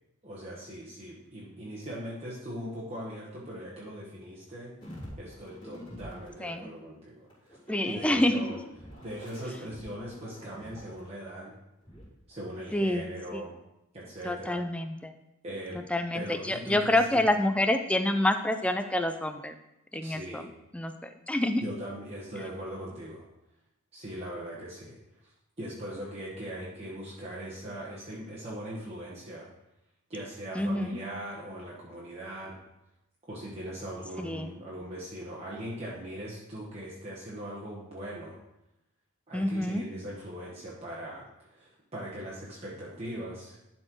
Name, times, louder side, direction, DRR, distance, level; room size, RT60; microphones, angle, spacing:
voice 1, 0.2-4.7 5.2-7.6 7.9-8.6 9.0-11.5 12.3-13.6 13.9-14.6 15.4-15.8 16.1-17.2 20.0-20.5 21.6-23.3 23.9-29.5 30.1-32.5 33.2-38.4 39.3-43.6, equal, 30° right, -7 dB, 1.4 m, -40 dB
sound 1, 4.8-6.3 7.3-11.1 11.8-12.0, equal, 20° left, 3.6 m, -46 dB
voice 2, 6.4-6.7 7.7-8.4 12.7-13.4 14.2-15.1 15.9-19.5 19.9-20.4 20.7-21.6 30.6-31.0 34.2-34.5 39.3-39.8, left 1 dB, 5° left, 8 dB, 0.4 m, -27 dB
11.5 x 4.4 x 4.5 m, 0.90 s
head